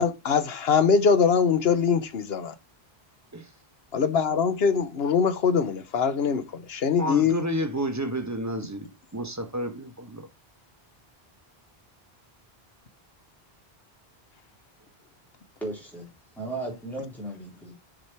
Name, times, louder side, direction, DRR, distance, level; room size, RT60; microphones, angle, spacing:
voice 1, 0.0-2.5 3.9-7.4, left 6 dB, 70° left, 1.1 m, -23 dB
voice 2, 7.0-10.3, right 1 dB, 15° right, 1.1 m, -31 dB
voice 3, 15.6-16.1 16.4-17.7, right 2 dB, ahead, 3.9 m, -35 dB
7.3 x 5.2 x 4.6 m
omnidirectional pair, 1.1 m